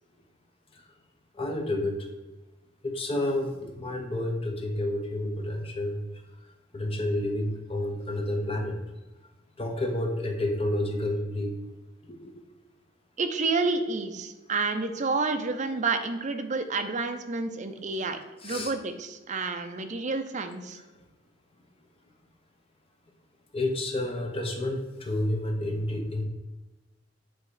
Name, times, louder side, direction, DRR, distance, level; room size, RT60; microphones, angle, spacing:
voice 1, 1.3-2.0 2.8-6.0 6.7-8.8 9.6-11.5 12.2-12.3 18.4-18.7 23.5-26.2, left 1 dB, 30° left, 2 dB, 1.0 m, -30 dB
voice 2, 13.2-18.2 18.4-20.8, right 3 dB, 40° right, 7 dB, 0.6 m, -29 dB
8.2 x 3.1 x 4.8 m, 1.1 s
head